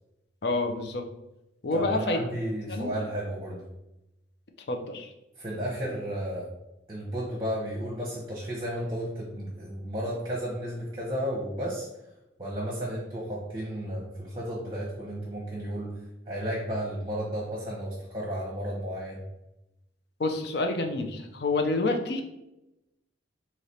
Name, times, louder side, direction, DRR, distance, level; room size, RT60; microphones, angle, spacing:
voice 1, 0.4-1.0 1.6-2.2 2.7-3.0 4.7-5.1 20.2-22.2, left 2 dB, 60° left, 4 dB, 0.5 m, -28 dB
voice 2, 1.7-3.6 5.4-6.5 6.9-11.9 12.4-16.0 16.3-19.2, equal, 25° right, -4 dB, 0.7 m, -33 dB
3.2 x 2.9 x 4.1 m, 0.90 s
head